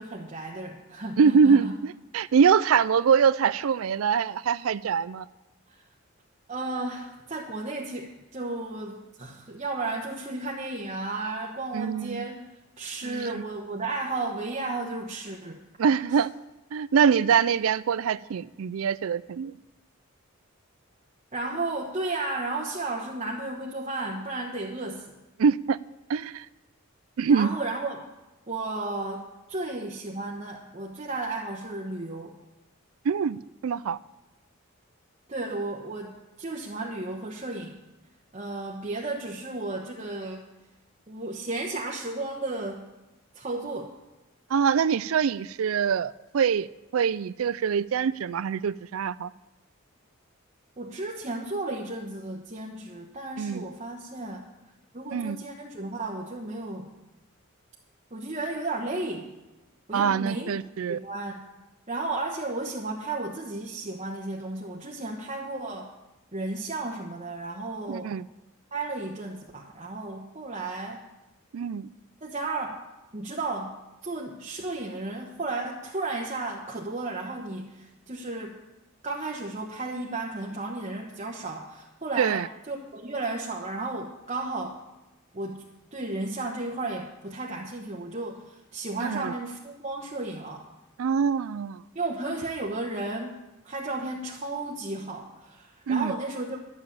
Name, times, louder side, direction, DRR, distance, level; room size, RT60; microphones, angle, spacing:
voice 1, 0.0-1.7 6.5-12.4 12.8-15.6 16.1-16.2 21.3-25.1 27.3-28.1 28.5-32.3 35.3-37.8 38.3-40.5 41.1-42.9 43.3-43.9 50.8-54.5 54.9-56.9 58.1-59.4 59.9-60.6 60.9-61.5 61.9-65.9 66.3-68.2 68.7-71.0 72.2-72.8 73.1-78.6 79.0-84.8 85.3-85.6 85.9-90.7 91.9-93.4 93.6-96.6, right 2 dB, 30° right, -2 dB, 1.1 m, -33 dB
voice 2, 1.2-5.3 11.7-12.2 13.0-13.4 15.8-16.3 16.7-19.5 25.4-25.8 26.1-26.5 27.2-27.5 33.1-33.4 33.6-34.0 44.5-46.7 46.9-49.3 53.4-53.6 55.1-55.4 59.9-61.0 67.9-68.2 71.5-71.9 82.2-82.5 89.0-89.3 91.0-91.8 95.9-96.1, right 6 dB, 75° right, 17 dB, 0.4 m, -24 dB
12.5 x 6.8 x 8.5 m, 1.0 s
head